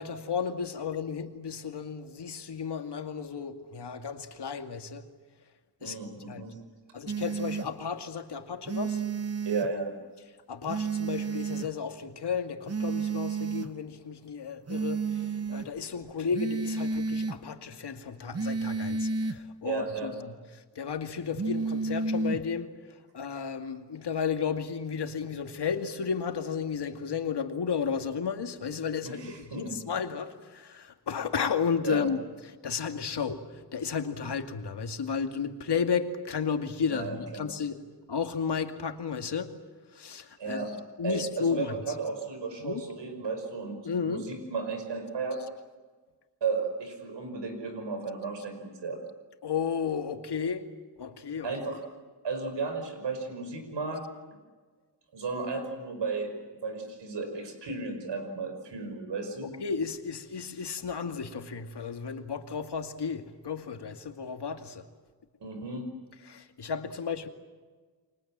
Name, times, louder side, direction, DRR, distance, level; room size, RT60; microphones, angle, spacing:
voice 1, 0.0-5.1 5.8-6.5 6.9-9.0 10.5-32.2 32.6-37.8 38.1-39.5 39.9-40.7 41.0-41.7 42.6-42.8 43.8-44.3 49.4-50.7 51.0-51.5 59.4-64.9 66.2-67.3, left 6 dB, 70° left, 2.3 m, -33 dB
voice 2, 5.8-6.6 9.5-9.9 19.6-20.1 29.0-29.8 31.8-32.1 36.9-37.5 40.4-40.7 41.0-45.4 46.4-49.0 51.4-51.8 52.2-54.0 55.1-59.5 65.4-65.9, right 4 dB, 90° right, 5.7 m, -34 dB
sound 1, 7.1-7.7 8.7-9.7 10.7-11.7 12.7-13.7 14.7-15.7 16.3-17.4 18.3-19.4 21.4-22.4, right 4 dB, 35° right, 1.2 m, -31 dB
29.5 x 24.5 x 7.5 m
wide cardioid pair, 95°, 41 cm